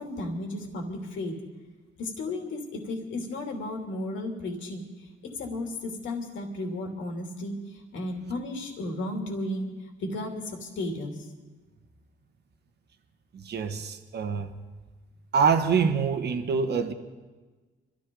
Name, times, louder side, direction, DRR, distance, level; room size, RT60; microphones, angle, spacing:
voice 1, 0.0-1.4 2.0-11.3, left 1 dB, 75° left, 2 dB, 2.8 m, -34 dB
voice 2, 13.4-14.5 15.3-16.9, right 6 dB, 55° right, 7 dB, 1.4 m, -25 dB
24.5 x 14.0 x 3.9 m, 1.3 s
cardioid pair, 90°, 20 cm